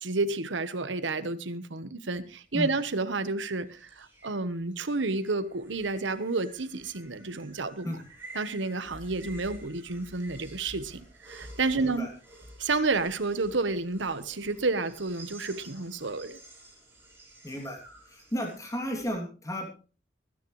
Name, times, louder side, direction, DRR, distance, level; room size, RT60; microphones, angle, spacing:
voice 1, 0.0-7.9 8.3-12.1 12.6-16.4, right 3 dB, 85° right, 12 dB, 1.1 m, -30 dB
sound 1, 2.3-19.1, right 1 dB, 15° right, 5.7 m, -51 dB
voice 2, 11.7-12.1 17.4-17.8 18.1-19.6, equal, 20° left, 1 dB, 2.7 m, -33 dB
23.5 x 9.6 x 3.2 m, 0.34 s
head